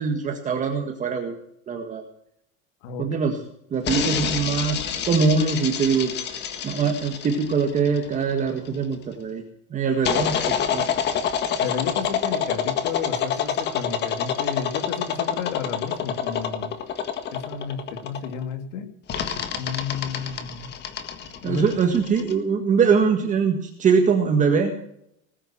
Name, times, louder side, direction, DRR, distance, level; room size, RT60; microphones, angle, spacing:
voice 1, 0.0-1.3 1.7-2.0 3.0-3.4 3.7-6.1 6.6-9.4 9.7-10.9 21.4-24.7, right 5 dB, 20° right, 3 dB, 1.8 m, -22 dB
sound 1, 3.8-8.7 10.0-18.4 19.1-22.3, left 8 dB, 30° left, 1.7 m, -27 dB
voice 2, 11.5-16.7 17.3-18.9 19.6-20.7 21.4-21.6, left 7 dB, 80° left, 6 dB, 2.9 m, -32 dB
19.5 x 9.4 x 7.4 m, 0.70 s
cardioid pair, 175°, 37 cm